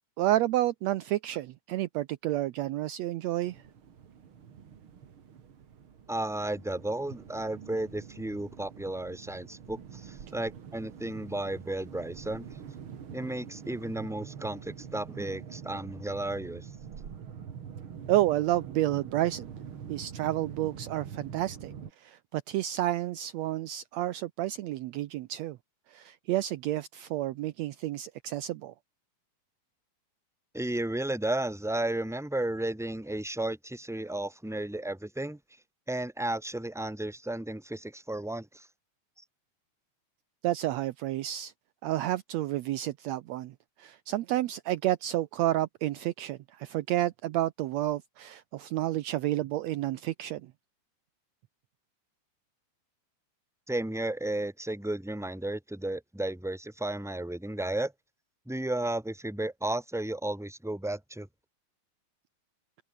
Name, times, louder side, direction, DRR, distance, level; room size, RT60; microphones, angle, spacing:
voice 1, 0.2-3.6 18.1-19.5 19.9-21.7 22.0-25.6 25.9-28.7 40.4-41.5 41.8-50.4, right 14 dB, 75° right, 1.8 m, -30 dB
sound 1, 3.4-21.9, right 7 dB, 50° right, 2.5 m, -45 dB
voice 2, 6.1-12.5 13.1-16.7 30.5-35.4 35.9-38.7 53.7-57.9 58.5-61.3, right 1 dB, ahead, 3.2 m, -33 dB
omnidirectional pair, 3.4 m